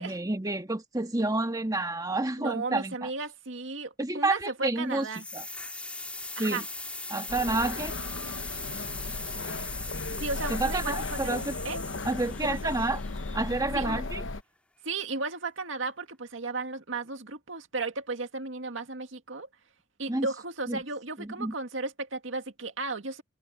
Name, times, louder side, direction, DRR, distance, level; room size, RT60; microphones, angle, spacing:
voice 1, 0.0-3.1 4.0-5.1 5.3-5.4 6.4-6.6 7.1-7.9 10.5-11.5 12.0-13.0 13.3-14.2 20.1-20.3 20.7-20.8 21.2-21.5, right 2 dB, 20° right, 1.6 m, -29 dB
voice 2, 2.4-5.2 6.4-6.6 10.2-11.8 12.4-12.7 13.7-14.0 14.8-19.5 20.0-23.2, right 3 dB, 80° right, 2.1 m, -35 dB
sound 1, 5.0-13.9, left 2 dB, 5° left, 2.1 m, -39 dB
sound 2, 7.3-14.4, left 3 dB, 75° left, 0.9 m, -36 dB
head